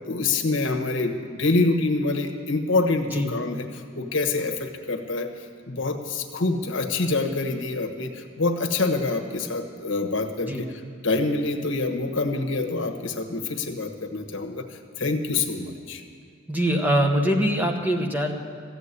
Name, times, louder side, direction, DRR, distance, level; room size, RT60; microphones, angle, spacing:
voice 1, 0.1-5.3 5.7-16.0, left 3 dB, 65° left, 6 dB, 1.2 m, -26 dB
voice 2, 16.5-18.3, equal, 10° right, 3 dB, 1.1 m, -23 dB
14.5 x 8.2 x 9.8 m, 2.3 s
head